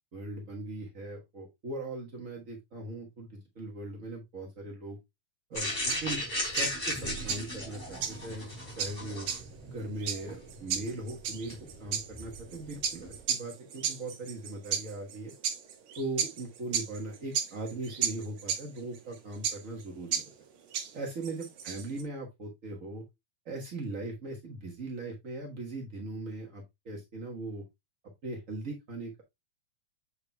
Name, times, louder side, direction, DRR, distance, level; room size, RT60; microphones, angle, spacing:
voice 1, 0.1-3.3 3.5-5.0 5.5-6.2 6.5-8.5 8.7-9.3 9.7-15.3 16.0-20.2 20.9-23.0 23.4-27.6 28.2-29.2, right 2 dB, 50° right, -1 dB, 0.9 m, -39 dB
sound 1, 5.5-13.2, left 1 dB, 15° left, 4.2 m, -37 dB
sound 2, 5.6-22.0, right 7 dB, 80° right, 2.7 m, -35 dB
7.3 x 6.7 x 2.2 m, 0.20 s
omnidirectional pair, 3.4 m